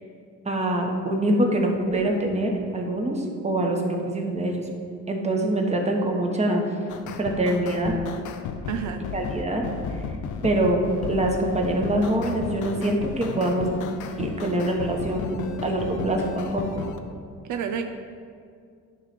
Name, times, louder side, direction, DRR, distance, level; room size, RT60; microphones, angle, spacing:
voice 1, 0.4-4.7 5.1-6.7 7.2-7.9 9.1-9.7 10.4-10.8 11.1-13.7 14.2-16.9, right 1 dB, 20° right, 1 dB, 1.2 m, -24 dB
sound 1, 6.9-17.0, left 6 dB, 80° left, 0.6 m, -34 dB
voice 2, 8.7-9.0 17.5-17.8, right 7 dB, 75° right, 5 dB, 0.6 m, -28 dB
9.8 x 3.3 x 5.9 m, 2.3 s
cardioid pair, 90°, 30 cm